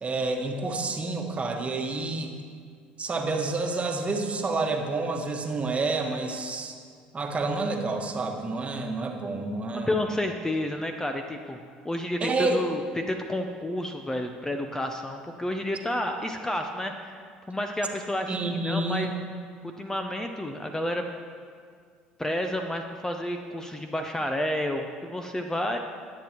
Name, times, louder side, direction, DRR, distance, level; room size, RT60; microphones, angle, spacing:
voice 1, 0.0-2.3 3.0-6.7 7.1-10.0 12.2-12.6 18.3-19.1, right 3 dB, 30° right, 3 dB, 1.3 m, -29 dB
voice 2, 9.7-11.6 11.8-17.2 17.5-18.3 18.6-19.1 19.8-21.1 22.2-25.8, left 1 dB, 10° left, 5 dB, 0.7 m, -30 dB
18.5 x 7.9 x 3.0 m, 2.1 s
hypercardioid pair, 65°, 4 cm